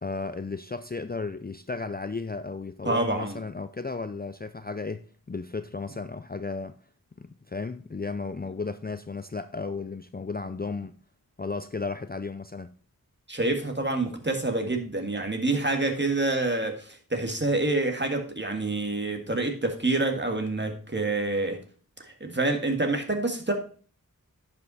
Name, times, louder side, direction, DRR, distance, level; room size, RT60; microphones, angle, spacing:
voice 1, 0.0-6.8 7.2-10.9 11.4-12.7, left 4 dB, 25° left, 0.5 m, -34 dB
voice 2, 2.8-3.4 13.3-21.6 22.0-23.5, right 2 dB, 30° right, 1.8 m, -27 dB
10.5 x 5.6 x 4.1 m
wide cardioid pair, 40°, 36 cm